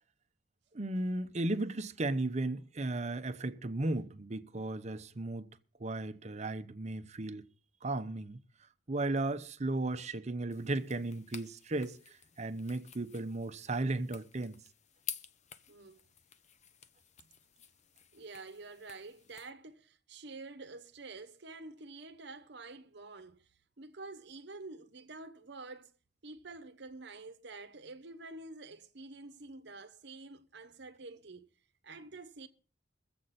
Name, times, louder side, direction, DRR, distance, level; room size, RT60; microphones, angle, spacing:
voice 1, 0.7-5.5 5.8-7.5 7.8-8.4 8.9-14.6, right 2 dB, 40° right, 0.8 m, -35 dB
sound 1, 10.5-19.5, left 8 dB, 40° left, 0.7 m, -51 dB
voice 2, 15.7-16.0 17.2-17.3 18.1-23.5 23.8-25.9 26.2-31.5 31.8-32.5, right 3 dB, 70° right, 0.9 m, -48 dB
22.5 x 7.7 x 4.2 m
head